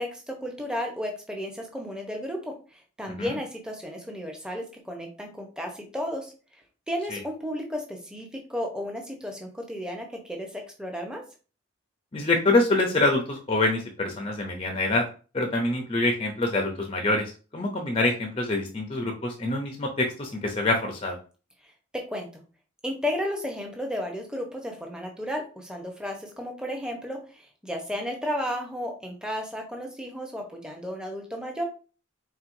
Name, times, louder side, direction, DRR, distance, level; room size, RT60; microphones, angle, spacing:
voice 1, 0.0-2.5 3.0-6.3 6.9-11.2 22.1-22.4 22.8-31.6, equal, 5° right, 1 dB, 0.8 m, -33 dB
voice 2, 12.1-15.0 15.3-21.2, left 2 dB, 30° left, 3 dB, 0.6 m, -25 dB
4.5 x 3.9 x 2.6 m, 0.36 s
head